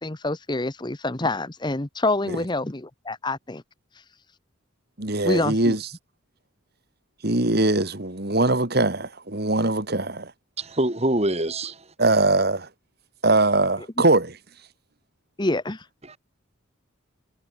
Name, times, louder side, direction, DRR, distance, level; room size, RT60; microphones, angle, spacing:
voice 1, 0.0-3.6 5.2-5.7 15.4-15.8, left 2 dB, 20° left, 1.0 m, -26 dB
voice 2, 5.0-5.9 7.2-10.3 12.0-12.7 13.2-14.4, right 2 dB, 50° right, 2.6 m, -22 dB
voice 3, 10.6-11.9 16.0-16.2, right 1 dB, 30° right, 3.5 m, -25 dB
head